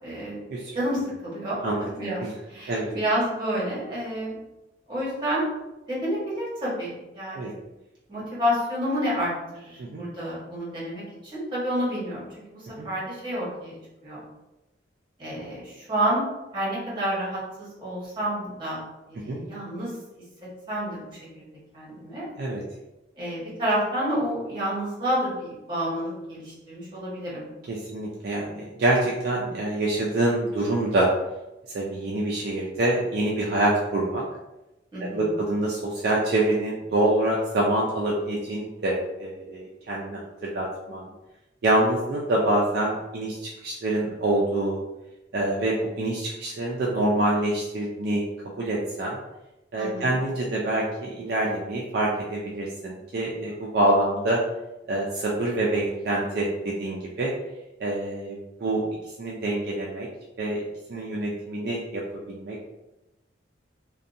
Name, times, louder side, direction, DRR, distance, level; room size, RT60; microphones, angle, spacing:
voice 1, 0.0-0.4 0.7-1.6 2.0-2.2 2.5-4.3 4.9-5.5 5.9-7.6 8.1-13.7 14.0-14.2 15.2-16.2 16.5-18.8 19.1-19.9 20.7-21.5 21.7-22.3 23.2-27.5 34.9-35.3 49.7-50.2, equal, 25° right, -8 dB, 1.1 m, -29 dB
voice 2, 27.7-31.1 31.7-34.2 35.0-41.1 41.6-44.8 45.3-49.2 49.7-54.4 54.9-57.3 57.8-58.8 59.2-60.1 60.4-60.6 60.9-62.0 62.3-62.7, right 1 dB, 55° right, -4 dB, 0.4 m, -26 dB
2.6 x 2.2 x 2.5 m, 0.98 s
head